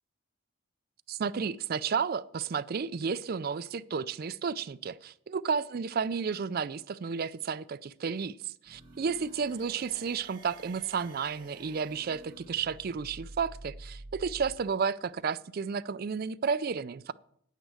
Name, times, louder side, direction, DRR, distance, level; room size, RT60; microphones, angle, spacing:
voice 1, 1.1-17.1, right 6 dB, 45° right, 15 dB, 0.4 m, -32 dB
sound 1, 8.6-14.6, right 2 dB, 25° right, 2.1 m, -49 dB
9.2 x 9.1 x 4.9 m, 0.66 s
head